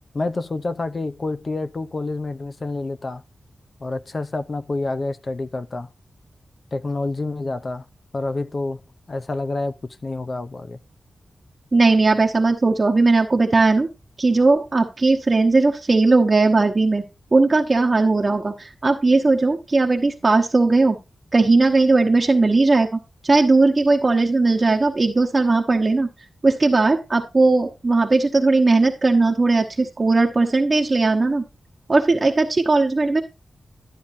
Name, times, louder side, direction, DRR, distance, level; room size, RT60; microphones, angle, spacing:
voice 1, 0.1-3.2 3.8-5.9 6.7-7.8 8.1-8.8 9.1-10.8, left 2 dB, 35° left, 0.6 m, -28 dB
voice 2, 11.7-13.9 14.2-17.0 17.3-21.0 21.3-26.1 26.4-31.4 31.9-33.2, right 3 dB, 30° right, 1.1 m, -18 dB
12.5 x 8.5 x 2.7 m
wide cardioid pair, 155°, 0 cm